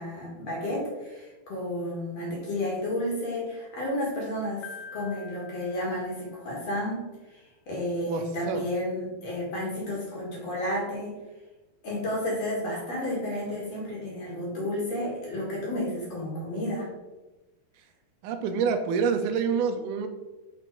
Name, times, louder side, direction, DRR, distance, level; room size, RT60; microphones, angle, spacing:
voice 1, 0.0-7.0 7.3-11.1 11.8-16.9, left 1 dB, 50° left, -4 dB, 2.6 m, -32 dB
Piano, 4.6-6.7, left 6 dB, 75° left, 2.5 m, -46 dB
voice 2, 8.1-8.6 18.2-20.1, right 6 dB, 80° right, 6 dB, 1.9 m, -27 dB
6.0 x 6.0 x 4.6 m, 1.1 s
omnidirectional pair, 4.3 m